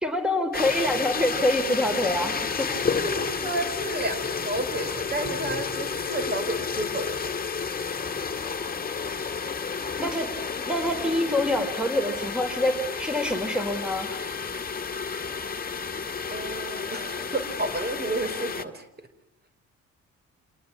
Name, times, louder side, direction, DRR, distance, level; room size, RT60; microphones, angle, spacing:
voice 1, 0.0-2.7 10.0-10.3 10.7-14.2, left 1 dB, 5° right, 7 dB, 4.3 m, -26 dB
sound 1, 0.5-18.7, left 5 dB, 30° left, 2.1 m, -31 dB
voice 2, 3.0-7.1 16.3-18.9, right 2 dB, 35° right, 9 dB, 4.9 m, -32 dB
29.0 x 19.5 x 8.7 m, 0.77 s
cardioid pair, 90°, 30 cm